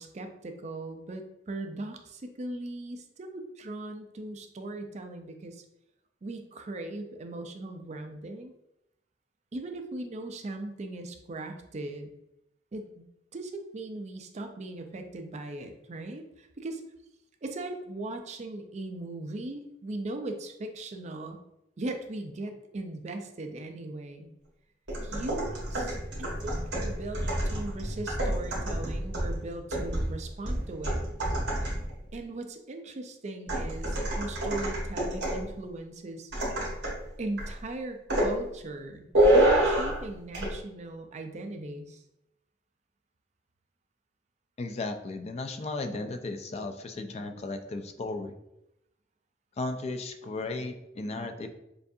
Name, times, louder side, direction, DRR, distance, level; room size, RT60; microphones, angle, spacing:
voice 1, 0.0-5.6 6.2-8.5 9.5-12.1 12.7-13.0 13.3-16.8 17.4-21.4 21.8-24.3 25.0-31.0 32.1-36.3 37.2-42.0, right 2 dB, 40° right, 5 dB, 0.5 m, -39 dB
sound 1, 24.9-32.0 33.5-35.5 36.3-37.0 37.4-37.6 38.1-38.4 39.1-40.0 40.3-40.5, right 1 dB, 65° right, 1.5 m, -28 dB
voice 2, 44.6-48.4 49.6-51.5, left 2 dB, 35° left, 7 dB, 0.4 m, -35 dB
6.7 x 2.5 x 2.7 m, 0.85 s
head